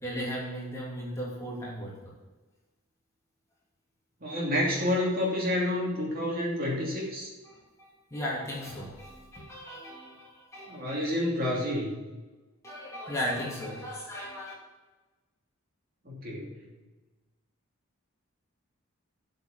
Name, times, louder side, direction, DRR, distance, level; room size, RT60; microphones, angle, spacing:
voice 1, 0.0-2.1 7.4-11.1 12.6-14.5, equal, 15° left, -5 dB, 2.6 m, -37 dB
voice 2, 4.2-7.3 10.7-12.0 16.0-16.5, left 1 dB, 40° right, -3 dB, 2.9 m, -29 dB
8.1 x 7.1 x 7.1 m, 1.2 s
head